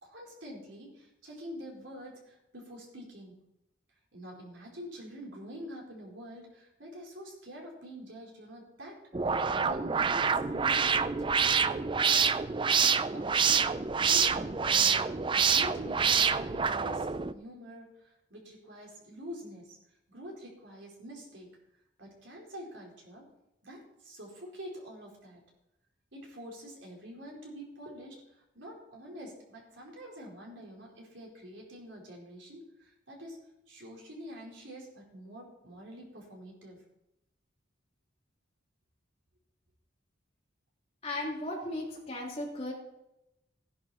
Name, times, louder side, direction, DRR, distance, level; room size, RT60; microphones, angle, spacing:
voice 1, 0.0-3.4 4.1-12.0 13.1-15.1 15.4-19.8 20.1-21.5 22.0-23.2 23.6-25.4 26.1-33.4 33.7-36.8, equal, 70° right, -2 dB, 4.5 m, -46 dB
sound 1, 9.1-17.3, right 6 dB, 25° right, 0.4 m, -27 dB
voice 2, 41.0-42.7, left 1 dB, 30° left, -2 dB, 2.9 m, -36 dB
16.5 x 11.0 x 4.3 m, 0.88 s
head